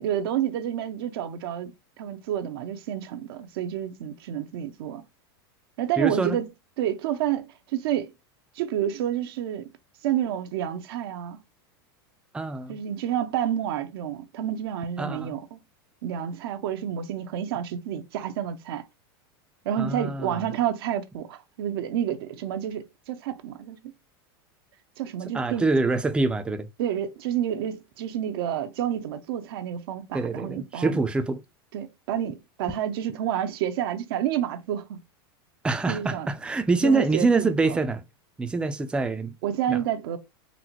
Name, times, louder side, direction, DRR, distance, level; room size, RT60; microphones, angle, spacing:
voice 1, 0.0-1.7 2.0-5.0 5.8-6.5 6.8-8.1 8.5-9.7 10.0-11.4 12.7-15.6 16.0-18.8 19.6-23.8 25.0-25.7 26.8-31.0 31.7-35.0 35.9-36.3 36.8-37.8 39.4-40.2, right 10 dB, 70° right, 0.6 m, -29 dB
voice 2, 6.0-6.4 12.3-12.8 15.0-15.4 19.8-20.5 25.3-26.7 30.1-31.4 35.6-38.0 38.4-39.3 39.7-39.8, right 3 dB, 10° right, 0.4 m, -25 dB
3.9 x 2.1 x 2.9 m
supercardioid pair, 130°, 13 cm